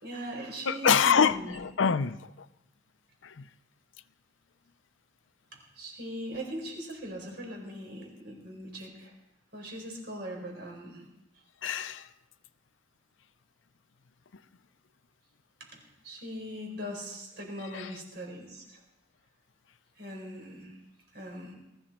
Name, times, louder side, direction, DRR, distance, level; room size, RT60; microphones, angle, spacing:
voice 1, 0.0-1.6 5.5-9.1 9.5-11.0 15.7-18.8 20.0-20.8 21.1-21.5, equal, 55° right, 4.8 m, -40 dB
voice 2, 0.7-2.2 3.2-3.5 11.6-12.1 17.7-17.9, left 6 dB, 75° left, 0.6 m, -25 dB
20.0 x 14.5 x 4.4 m
head